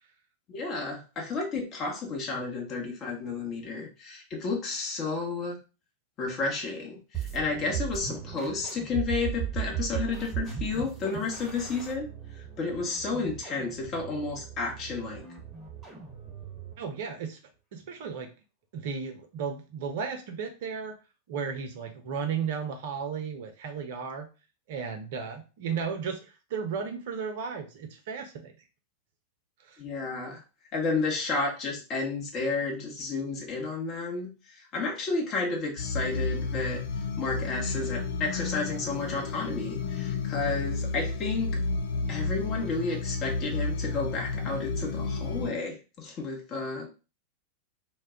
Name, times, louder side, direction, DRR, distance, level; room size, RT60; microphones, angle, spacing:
voice 1, 0.5-5.6 6.2-12.1 12.3-15.2 29.8-30.4 30.7-36.8 37.2-41.6 42.1-46.9, left 3 dB, 30° left, 0 dB, 0.8 m, -32 dB
sound 1, 7.1-16.8, right 9 dB, 15° right, 0.9 m, -37 dB
voice 2, 16.8-17.4 17.7-18.3 18.7-21.0 21.3-24.3 24.7-28.5 29.7-29.8, right 6 dB, 55° right, 5 dB, 0.6 m, -34 dB
sound 2, 35.8-45.5, left 4 dB, 60° left, 0.4 m, -32 dB
2.2 x 2.1 x 3.5 m, 0.32 s
figure-of-eight pair, 90°, 0 cm